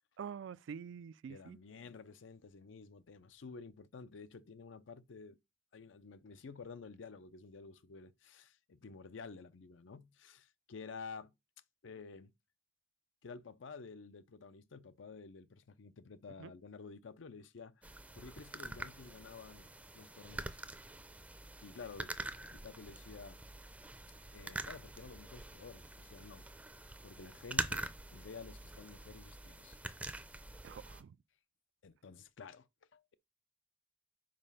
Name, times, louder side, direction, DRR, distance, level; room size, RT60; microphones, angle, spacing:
voice 1, 0.2-1.6 16.4-16.5 30.6-31.2, right 7 dB, 70° right, 0.3 m, -46 dB
voice 2, 1.3-5.4 5.7-11.3 11.8-12.3 13.2-20.6 21.6-22.1 22.4-23.4 24.3-26.4 27.0-29.8 31.8-33.1, left 4 dB, 75° left, 0.5 m, -51 dB
sound 1, 17.8-31.0, right 2 dB, 5° right, 0.5 m, -45 dB
5.2 x 4.8 x 5.5 m
head